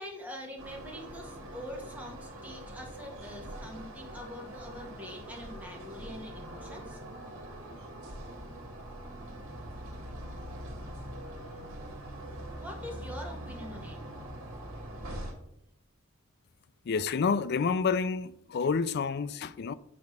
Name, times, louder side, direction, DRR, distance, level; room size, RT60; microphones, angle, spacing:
voice 1, 0.0-7.0 12.6-14.0, left 1 dB, 5° right, 1.6 m, -44 dB
sound 1, 0.6-15.3, right 1 dB, 75° right, 1.7 m, -43 dB
voice 2, 16.9-19.7, left 5 dB, 50° left, 0.4 m, -29 dB
8.6 x 3.5 x 6.5 m
head